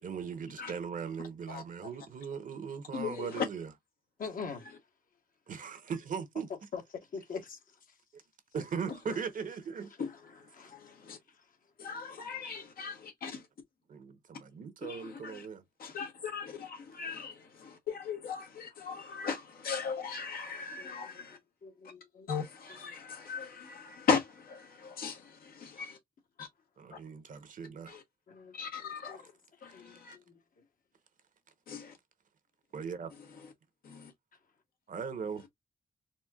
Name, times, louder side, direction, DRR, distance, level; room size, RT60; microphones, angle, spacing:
voice 1, 0.0-3.7 5.5-6.5 8.5-9.9 13.9-15.6 26.8-28.0 32.7-33.1 34.9-35.5, right 6 dB, 65° right, 0.9 m, -39 dB
voice 2, 1.5-1.9 2.9-3.5 9.1-9.2 10.0-11.2 11.8-13.4 14.8-15.5 15.8-21.4 22.3-26.0 26.4-26.5 26.9-27.0 27.9-28.0 28.5-29.3 29.6-30.2 31.7-32.0 33.2-33.5 33.8-34.1, left 5 dB, 90° left, 1.2 m, -38 dB
voice 3, 4.2-4.6 6.7-6.8 7.1-7.4 10.5-10.8 19.1-19.2 20.8-20.9 21.6-22.3 28.3-28.6 28.8-29.2 29.6-30.2, left 5 dB, 70° left, 1.2 m, -42 dB
4.2 x 2.7 x 2.3 m
wide cardioid pair, 105°, 15 cm